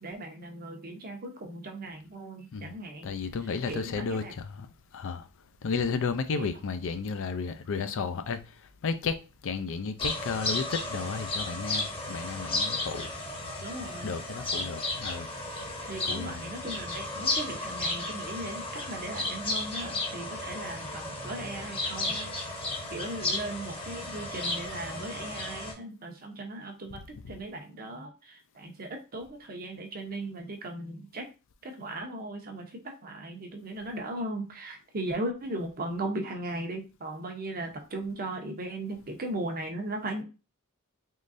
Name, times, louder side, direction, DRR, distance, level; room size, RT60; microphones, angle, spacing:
voice 1, 0.0-3.1 3.7-4.3 6.3-6.5 13.6-14.1 15.8-22.2 22.9-31.3 31.6-40.2, right 1 dB, 45° right, 0.8 m, -37 dB
voice 2, 3.0-4.7 4.9-5.3 5.6-9.2 9.4-13.1 14.0-15.3 16.0-16.5, left 5 dB, 65° left, 0.4 m, -33 dB
sound 1, 10.0-25.7, left 2 dB, 25° left, 0.9 m, -34 dB
3.7 x 3.2 x 2.5 m
head